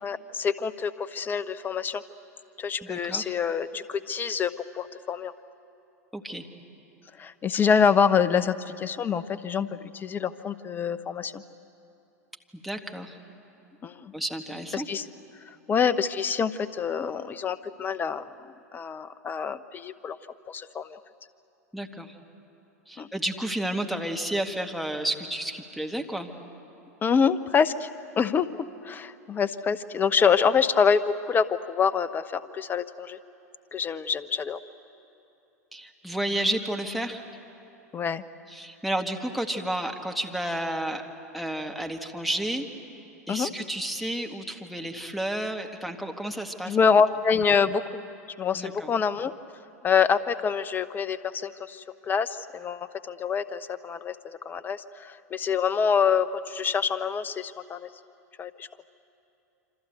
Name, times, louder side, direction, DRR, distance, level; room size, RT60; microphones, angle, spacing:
voice 1, 0.0-2.0 2.6-5.3 7.2-11.4 13.8-14.1 14.7-15.0 15.5-18.3 18.7-20.2 20.5-21.0 23.0-23.1 27.0-27.9 28.2-28.5 28.8-33.2 33.7-34.6 37.9-38.2 43.3-43.5 46.6-48.0 48.4-49.3 49.8-57.9 58.4-58.7, left 6 dB, 20° left, 13 dB, 0.8 m, -26 dB
voice 2, 2.8-3.3 6.1-6.5 12.5-13.2 14.1-14.9 21.7-22.1 22.9-26.3 35.7-37.2 38.5-41.0 41.3-42.6 43.3-46.8 48.5-48.9, right 1 dB, ahead, 2 dB, 1.8 m, -31 dB
27.5 x 25.5 x 8.1 m, 2.8 s
figure-of-eight pair, 90°, 9 cm